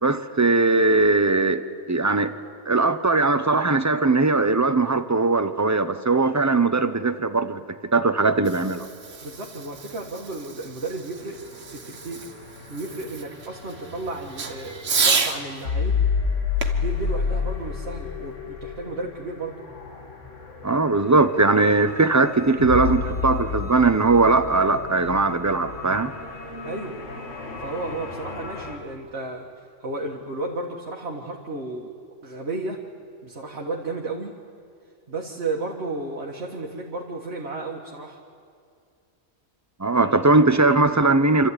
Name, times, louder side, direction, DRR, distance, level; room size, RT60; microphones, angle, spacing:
voice 1, 0.0-1.6 1.9-2.3 2.7-7.6 7.9-8.9 20.6-26.1 39.8-41.5, right 3 dB, 20° right, 10 dB, 0.6 m, -20 dB
Fireworks, 8.2-15.4 16.6-18.2, right 5 dB, 85° right, 1.8 m, -31 dB
voice 2, 9.2-11.4 11.7-12.2 12.7-16.0 16.7-19.6 26.6-27.0 27.6-29.5 29.8-31.9 32.2-32.8 33.2-34.4 35.1-38.2 39.9-40.2, right 2 dB, 60° right, -1 dB, 1.8 m, -33 dB
sound 1, 11.2-28.8, left 5 dB, 85° left, 2.1 m, -31 dB
27.0 x 13.0 x 9.9 m, 2.3 s
omnidirectional pair, 1.2 m